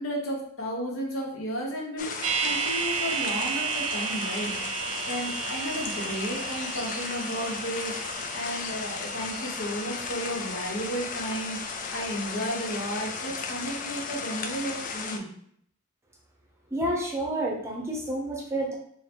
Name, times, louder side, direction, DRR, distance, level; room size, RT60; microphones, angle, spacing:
voice 1, 0.0-15.3, equal, 70° left, -2 dB, 1.1 m, -33 dB
sound 1, 2.0-15.2, left 5 dB, 35° left, 0.3 m, -35 dB
sound 2, 2.2-12.3 12.6-12.7, right 7 dB, 70° right, 0.5 m, -34 dB
voice 2, 16.7-18.7, right 1 dB, 15° right, -2 dB, 0.7 m, -29 dB
3.8 x 2.1 x 4.4 m, 0.67 s
head